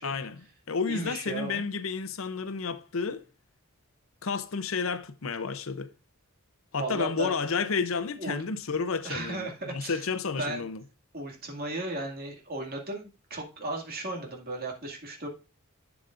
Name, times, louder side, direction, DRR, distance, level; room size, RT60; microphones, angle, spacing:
voice 1, 0.0-3.2 4.2-5.9 6.7-10.8, left 5 dB, 65° left, 0.7 m, -31 dB
voice 2, 0.9-1.6 6.8-7.4 8.2-8.4 9.0-10.1 10.4-10.7 11.1-15.3, right 1 dB, 45° right, 2.2 m, -35 dB
11.5 x 7.1 x 2.5 m
head